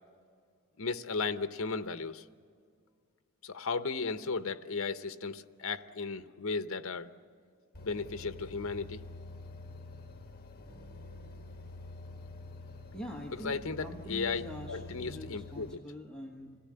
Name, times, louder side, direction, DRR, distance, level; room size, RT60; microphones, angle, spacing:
voice 1, 0.8-2.2 3.4-7.1 7.8-9.0 13.4-15.8, left 4 dB, 65° left, 10 dB, 0.8 m, -35 dB
sound 1, 7.7-15.7, left 2 dB, 45° left, 1.6 m, -47 dB
voice 2, 12.9-16.6, equal, 5° left, -2 dB, 1.4 m, -44 dB
26.0 x 17.0 x 8.7 m, 2.1 s
head